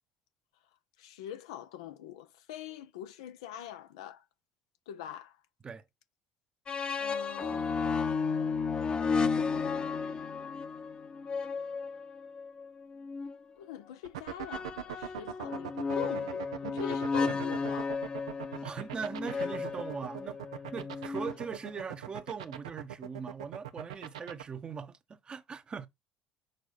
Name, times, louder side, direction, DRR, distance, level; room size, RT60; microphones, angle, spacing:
voice 1, 1.0-4.2 4.9-5.4 7.0-10.4 13.6-18.0, left 11 dB, 85° left, 0.7 m, -44 dB
sound 1, 6.7-13.4 14.4-21.8, left 5 dB, 35° left, 0.9 m, -33 dB
sound 2, 14.0-24.4, right 10 dB, 90° right, 0.6 m, -40 dB
voice 2, 18.6-20.4 20.7-25.9, right 5 dB, 35° right, 1.0 m, -40 dB
6.8 x 4.6 x 4.1 m
hypercardioid pair, 70°, 3 cm